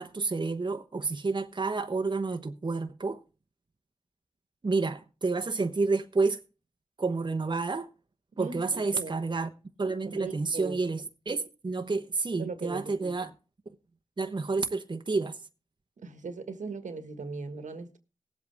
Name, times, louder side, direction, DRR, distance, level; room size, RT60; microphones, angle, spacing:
voice 1, 0.0-3.2 4.6-6.4 7.0-7.9 8.4-9.5 9.8-13.3 14.2-15.4, right 3 dB, 40° right, 1.0 m, -29 dB
voice 2, 8.3-9.1 10.1-10.8 12.4-13.3 16.0-18.0, right 4 dB, 80° right, 1.6 m, -39 dB
18.5 x 8.1 x 3.5 m
cardioid pair, 50°, 13 cm